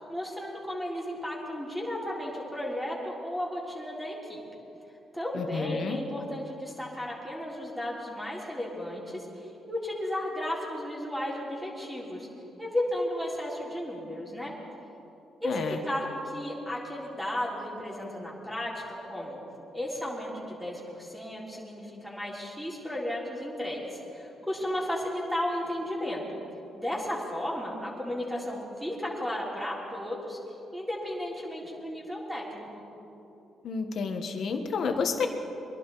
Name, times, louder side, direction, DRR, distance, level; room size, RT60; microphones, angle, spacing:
voice 1, 0.1-4.4 5.1-12.3 12.6-14.5 15.4-19.4 19.7-26.2 26.7-30.4 30.7-32.9, left 1 dB, ahead, -4 dB, 3.7 m, -34 dB
voice 2, 5.3-6.0 15.4-15.8 33.6-35.3, left 5 dB, 60° left, 5 dB, 1.5 m, -30 dB
23.0 x 11.5 x 4.2 m, 3.0 s
cardioid pair, 80°, 0 cm